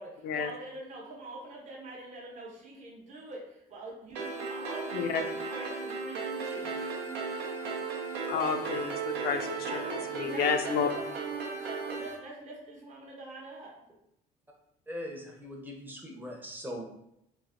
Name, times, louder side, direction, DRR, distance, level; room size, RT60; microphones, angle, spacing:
voice 1, 0.0-6.7 9.7-13.8, right 2 dB, 45° right, -3 dB, 0.8 m, -44 dB
sound 1, 4.2-12.2, right 4 dB, 85° right, 0.6 m, -36 dB
voice 2, 8.3-9.7 10.2-10.9, left 6 dB, 70° left, 7 dB, 0.4 m, -30 dB
voice 3, 14.9-16.9, equal, 10° right, 0 dB, 0.6 m, -40 dB
3.1 x 2.4 x 2.5 m, 0.79 s
cardioid pair, 110°, 17 cm